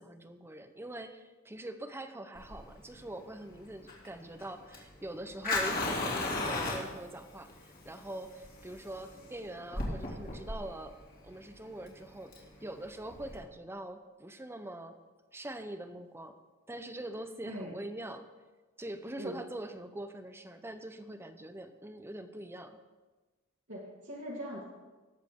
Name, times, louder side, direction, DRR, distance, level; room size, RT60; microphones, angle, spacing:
voice 1, 0.0-10.9 11.2-15.0 15.3-16.4 16.7-18.3 18.8-22.8, right 1 dB, 10° right, 8 dB, 0.7 m, -43 dB
Fire, 2.4-13.4, left 2 dB, 45° left, 2.8 m, -37 dB
voice 2, 17.4-17.8 19.2-19.4 23.7-24.6, equal, 65° right, -6 dB, 2.1 m, -41 dB
19.0 x 7.4 x 3.7 m, 1.2 s
head